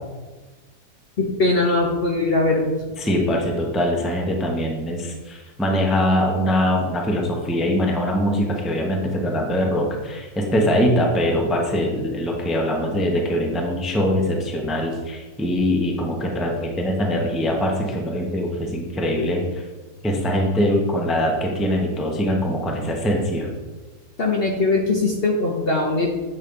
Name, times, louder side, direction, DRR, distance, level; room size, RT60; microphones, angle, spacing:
voice 1, 1.2-2.7 24.2-26.1, left 2 dB, 45° left, 0 dB, 0.9 m, -20 dB
voice 2, 3.0-19.4 20.0-23.5, equal, ahead, 0 dB, 0.6 m, -22 dB
8.2 x 3.2 x 5.2 m, 1.3 s
omnidirectional pair, 1.7 m